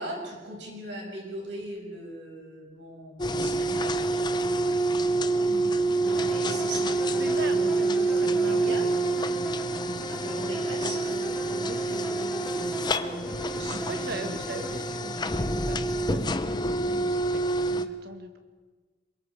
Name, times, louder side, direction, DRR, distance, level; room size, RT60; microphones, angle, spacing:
voice 1, 0.0-8.9 10.1-14.7 15.0-15.4, right 1 dB, 80° right, 0 dB, 6.5 m, -40 dB
sound 1, 3.2-17.9, right 2 dB, 25° left, 0.8 m, -27 dB
voice 2, 5.5-5.8 7.2-9.4 11.5-12.1 13.7-18.4, right 2 dB, 60° right, 6 dB, 1.9 m, -41 dB
sound 2, 6.0-14.8, equal, 10° right, 3.2 m, -39 dB
27.0 x 23.0 x 4.9 m, 1.3 s
head